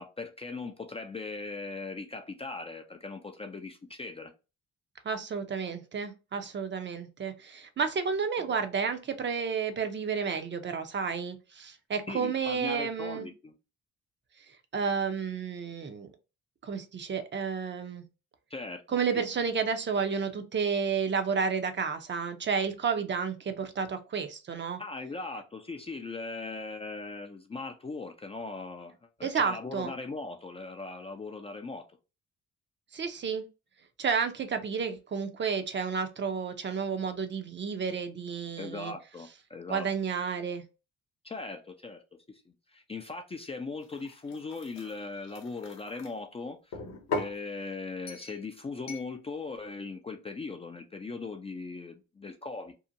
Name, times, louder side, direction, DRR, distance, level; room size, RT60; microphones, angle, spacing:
voice 1, 0.0-4.3 8.5-8.6 12.1-13.5 18.5-19.2 24.8-28.9 29.2-31.9 38.6-39.9 41.2-42.0 42.3-46.8 47.1-52.7, left 3 dB, 20° left, 0.4 m, -39 dB
voice 2, 5.0-13.3 14.7-16.1 16.6-18.0 18.9-24.8 29.2-29.9 32.9-33.4 34.0-38.9 39.7-40.6, right 6 dB, 40° right, 0.6 m, -31 dB
sound 1, 43.8-46.1 46.7-47.4 48.1-48.4 48.9-49.1, left 3 dB, 60° left, 0.8 m, -38 dB
2.7 x 2.1 x 2.5 m
cardioid pair, 90°, 30 cm